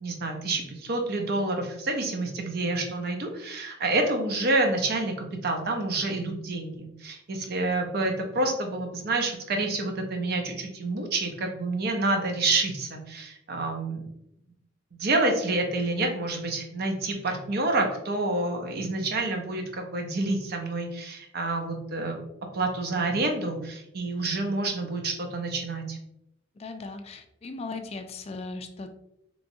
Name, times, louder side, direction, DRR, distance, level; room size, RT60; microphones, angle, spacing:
voice 1, 0.0-14.0 15.0-22.2 22.5-26.0, right 2 dB, 55° right, 3 dB, 0.6 m, -28 dB
voice 2, 26.6-28.9, left 3 dB, 35° left, 7 dB, 0.3 m, -38 dB
3.0 x 2.6 x 2.6 m, 0.79 s
head